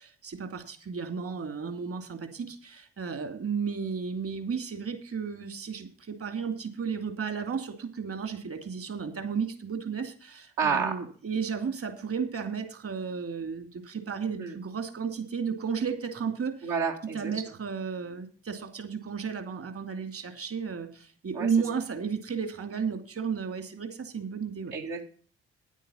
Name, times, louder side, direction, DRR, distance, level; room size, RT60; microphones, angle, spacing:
voice 1, 0.0-16.7 17.1-24.7, right 6 dB, 50° right, 8 dB, 2.6 m, -33 dB
voice 2, 10.6-11.0 14.4-14.6 16.6-17.4 21.3-21.5 24.7-25.0, right 5 dB, 80° right, 0 dB, 2.1 m, -29 dB
9.6 x 9.2 x 5.6 m, 0.41 s
hypercardioid pair, 50°, 29 cm